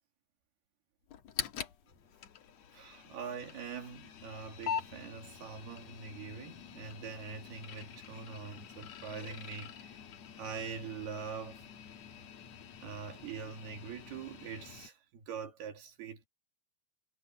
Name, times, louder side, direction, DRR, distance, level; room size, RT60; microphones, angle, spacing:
sound 1, 1.1-14.9, left 8 dB, 55° left, 2.1 m, -45 dB
voice 1, 2.7-10.0 10.4-11.7 12.8-16.3, right 6 dB, 75° right, 4.6 m, -43 dB
omnidirectional pair, 4.6 m